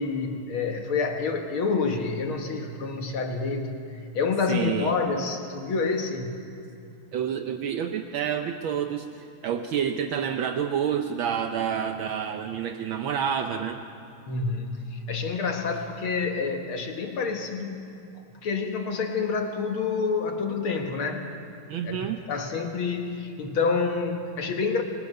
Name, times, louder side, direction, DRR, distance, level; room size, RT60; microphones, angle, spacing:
voice 1, 0.0-6.4 14.3-17.8 18.1-21.3 21.8-24.8, left 4 dB, 70° left, 3 dB, 2.1 m, -28 dB
voice 2, 4.5-4.9 7.1-13.8 21.7-22.2, right 8 dB, 70° right, 6 dB, 1.5 m, -28 dB
27.0 x 20.0 x 5.5 m, 2.6 s
omnidirectional pair, 2.4 m